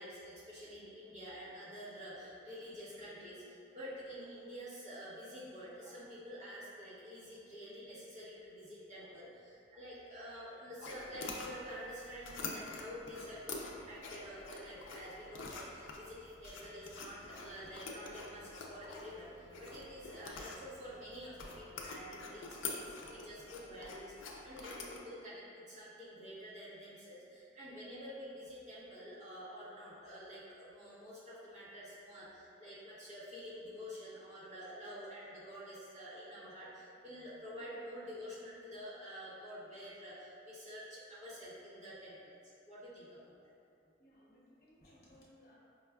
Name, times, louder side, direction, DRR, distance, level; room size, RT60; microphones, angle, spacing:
voice 1, 0.0-42.3 42.6-43.5, equal, 40° right, -10 dB, 1.0 m, -49 dB
sound 1, 10.8-25.0, left 3 dB, 75° left, 0.4 m, -47 dB
sound 2, 16.6-22.0, equal, 15° right, 0.4 m, -66 dB
voice 2, 44.0-45.6, left 1 dB, 55° left, -6 dB, 0.8 m, -63 dB
5.0 x 2.3 x 2.2 m, 2.4 s
head